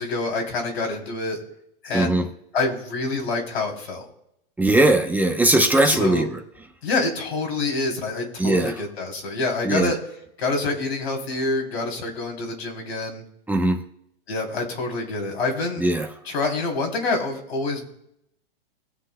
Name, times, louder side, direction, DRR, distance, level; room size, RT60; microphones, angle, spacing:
voice 1, 0.0-1.4 1.8-2.2 2.5-4.0 5.8-6.3 6.8-10.0 10.4-13.2 14.3-15.8 16.2-17.9, left 3 dB, 85° left, 0 dB, 3.2 m, -26 dB
voice 2, 1.9-2.3 4.6-6.4 8.4-8.8 9.6-10.0 13.5-13.8 15.8-16.1, right 2 dB, 5° right, 3 dB, 0.8 m, -19 dB
20.5 x 7.6 x 2.2 m, 0.76 s
hypercardioid pair, 125°, 30 cm